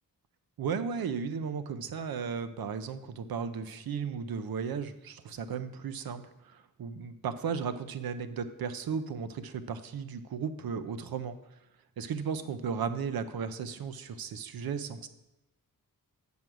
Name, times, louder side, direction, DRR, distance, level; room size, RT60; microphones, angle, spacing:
voice 1, 0.6-11.4 12.0-15.1, right 6 dB, 85° right, 11 dB, 0.7 m, -35 dB
7.7 x 5.4 x 6.1 m, 0.94 s
wide cardioid pair, 130°, 35 cm